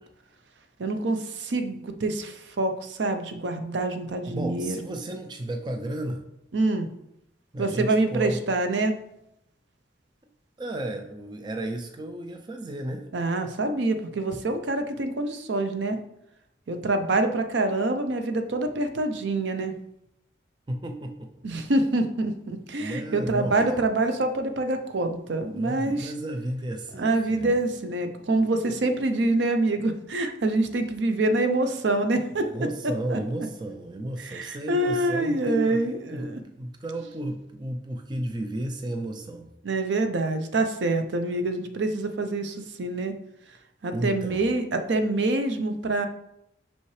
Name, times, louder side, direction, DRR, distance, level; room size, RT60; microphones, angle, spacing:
voice 1, 0.8-4.8 6.5-6.9 7.6-8.9 13.1-16.0 16.7-19.7 21.4-26.1 27.0-32.5 33.1-33.2 34.2-36.4 39.6-43.1 43.8-46.1, right 2 dB, 70° right, 7 dB, 0.6 m, -26 dB
voice 2, 4.3-6.2 7.5-8.4 10.6-13.1 20.7-21.3 22.8-23.9 25.5-27.6 32.3-35.8 36.1-39.5 43.9-44.4, right 1 dB, 25° right, 5 dB, 0.4 m, -33 dB
5.6 x 5.5 x 3.2 m, 0.81 s
head